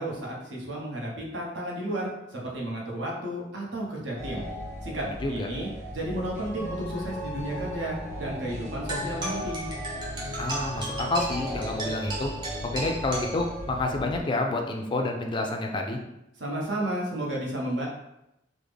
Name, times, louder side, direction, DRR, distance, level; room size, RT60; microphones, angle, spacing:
voice 1, 0.0-4.4 4.8-9.7 16.4-17.9, right 1 dB, 70° right, -3 dB, 0.9 m, -33 dB
sound 1, 4.1-14.2, equal, 45° right, 1.1 m, -37 dB
voice 2, 5.0-5.5 10.4-12.3 12.6-16.0, left 2 dB, 25° left, 2 dB, 0.3 m, -29 dB
sound 2, 8.9-13.9, right 2 dB, 25° right, 0.7 m, -35 dB
3.4 x 2.0 x 3.3 m, 0.86 s
head